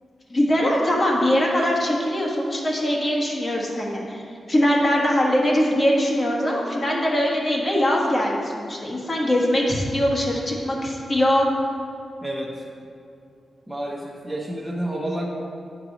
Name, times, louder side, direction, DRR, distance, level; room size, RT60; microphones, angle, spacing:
voice 1, 0.3-4.2 4.5-11.4, equal, 35° left, -2 dB, 1.4 m, -22 dB
voice 2, 12.2-12.6 13.7-15.3, right 1 dB, ahead, -5 dB, 0.8 m, -29 dB
9.9 x 4.6 x 4.0 m, 2.5 s
wide cardioid pair, 100°, 0 cm